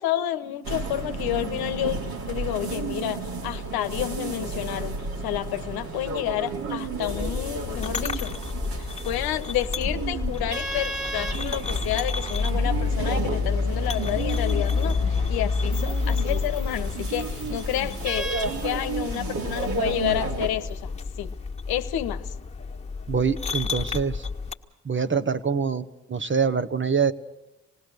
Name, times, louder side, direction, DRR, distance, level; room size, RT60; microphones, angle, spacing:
voice 1, 0.0-4.9 5.2-8.3 8.7-21.3 21.7-22.3, left 13 dB, 75° left, 10 dB, 1.0 m, -30 dB
sound 1, 0.6-20.5, right 3 dB, 70° right, 3.5 m, -32 dB
sound 2, 7.0-24.5, left 4 dB, 20° left, 1.8 m, -29 dB
voice 2, 23.1-24.2 24.8-27.1, right 6 dB, 30° right, 11 dB, 1.2 m, -25 dB
27.0 x 19.0 x 6.6 m, 0.98 s
hypercardioid pair, 50°, 38 cm